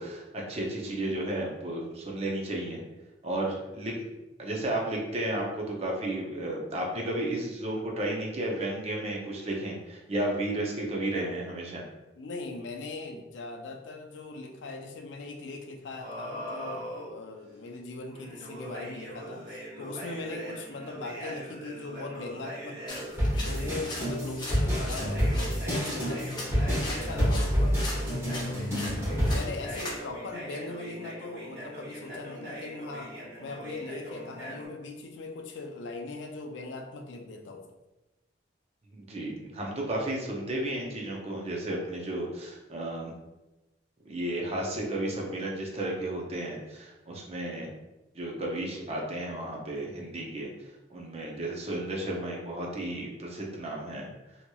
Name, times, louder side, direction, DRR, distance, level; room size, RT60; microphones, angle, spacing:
voice 1, 0.0-2.8 3.2-3.9 4.4-11.8 38.9-43.1 44.0-47.7 48.1-50.5 50.9-54.1, right 1 dB, 35° right, -1 dB, 0.5 m, -33 dB
voice 2, 12.2-23.1 23.4-28.6 29.0-37.7, left 3 dB, 80° left, 4 dB, 0.4 m, -40 dB
sound 1, 16.0-17.1 18.1-23.8 24.7-34.7, right 1 dB, 70° right, 1.4 m, -41 dB
sound 2, 22.9-30.0, left 2 dB, 25° left, 0.6 m, -41 dB
sound 3, 23.2-29.3, equal, 15° right, 1.1 m, -28 dB
2.8 x 2.8 x 2.3 m, 1.0 s
head